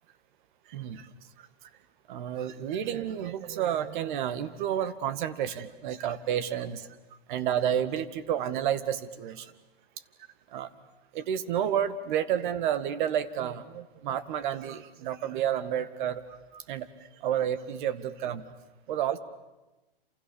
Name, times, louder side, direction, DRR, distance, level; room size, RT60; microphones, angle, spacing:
voice 1, 0.7-1.1 1.4-1.5 2.1-6.9 7.3-9.5 10.5-10.7 11.1-16.2 16.5-16.9 17.2-18.5 18.9-19.2, right 10 dB, 55° right, 13 dB, 2.0 m, -30 dB
28.5 x 27.5 x 7.2 m, 1.1 s
hypercardioid pair, 130°, 30 cm